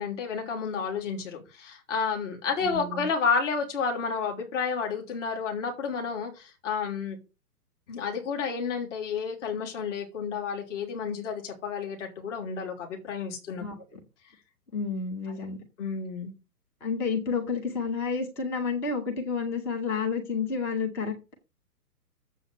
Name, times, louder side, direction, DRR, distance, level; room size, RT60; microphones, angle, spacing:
voice 1, 0.0-7.2 7.9-13.6 15.8-16.3, left 5 dB, 50° left, 3.4 m, -31 dB
voice 2, 2.6-3.1 13.6-14.0 14.7-15.6 16.8-21.3, left 5 dB, 5° left, 0.6 m, -30 dB
7.7 x 7.5 x 5.2 m
figure-of-eight pair, 125°, 48 cm